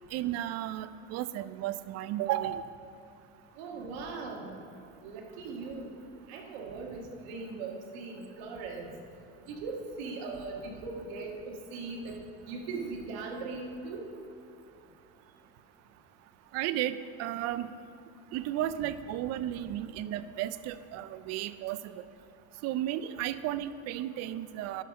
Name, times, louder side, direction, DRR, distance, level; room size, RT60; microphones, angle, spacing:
voice 1, 0.1-2.6 16.5-17.7 18.3-22.0 22.6-24.8, right 12 dB, 50° right, 14 dB, 0.5 m, -34 dB
voice 2, 3.6-4.5 5.0-5.9 6.3-8.9 9.5-12.2 12.5-14.0, right 3 dB, 80° right, 1 dB, 1.6 m, -39 dB
11.5 x 5.6 x 5.3 m, 2.7 s
supercardioid pair, 110°, 32 cm